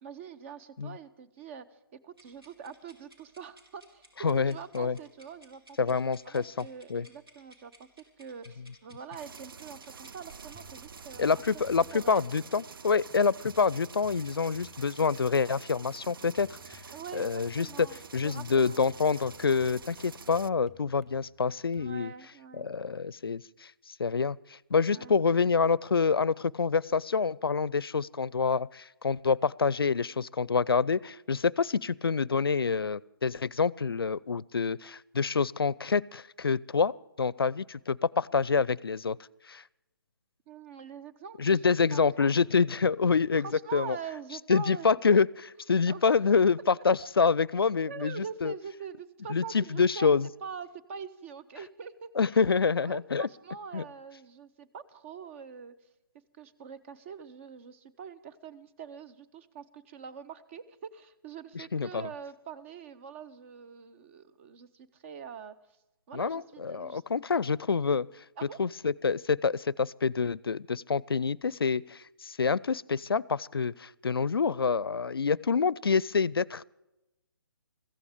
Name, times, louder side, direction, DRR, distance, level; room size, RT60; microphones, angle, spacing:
voice 1, 0.0-1.6 1.9-4.0 4.3-7.9 8.2-11.4 11.8-12.2 16.9-17.2 17.6-18.8 21.8-22.7 24.9-25.1 40.5-41.6 41.9-42.3 43.4-45.2 45.9-46.1 47.9-50.1 50.4-52.1 52.7-55.7 56.4-65.5 66.1-67.0 68.4-68.6, right 6 dB, 35° right, 11 dB, 0.8 m, -44 dB
sound 1, 2.1-12.5, right 1 dB, 85° right, 4.3 m, -59 dB
voice 2, 4.2-5.0 5.8-6.6 6.9-7.1 11.2-16.8 17.1-17.9 18.1-22.1 22.6-23.7 24.0-39.2 39.5-39.6 41.4-43.5 43.7-44.0 44.5-45.3 45.7-48.5 49.3-50.3 52.2-53.3 53.7-53.8 61.5-62.1 66.1-68.1 68.6-76.6, left 5 dB, 85° left, 24 dB, 0.4 m, -27 dB
sound 2, 9.2-20.5, right 6 dB, 70° right, 0.4 m, -48 dB
sound 3, 10.4-21.9, left 5 dB, ahead, 1.6 m, -61 dB
15.0 x 15.0 x 5.0 m, 0.95 s
figure-of-eight pair, 140°, 12 cm